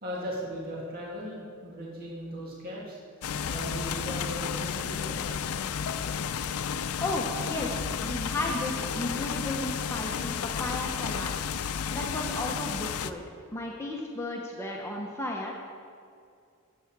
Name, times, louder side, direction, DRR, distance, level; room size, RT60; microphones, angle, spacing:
voice 1, 0.0-3.0 3.5-5.3 10.6-10.7, equal, 45° right, -4 dB, 1.9 m, -38 dB
sound 1, 3.2-13.1, left 7 dB, 80° left, 0.4 m, -32 dB
voice 2, 7.0-11.3 11.6-13.2 13.5-15.5, left 1 dB, 10° left, -1 dB, 0.8 m, -34 dB
12.5 x 8.4 x 4.7 m, 2.4 s
head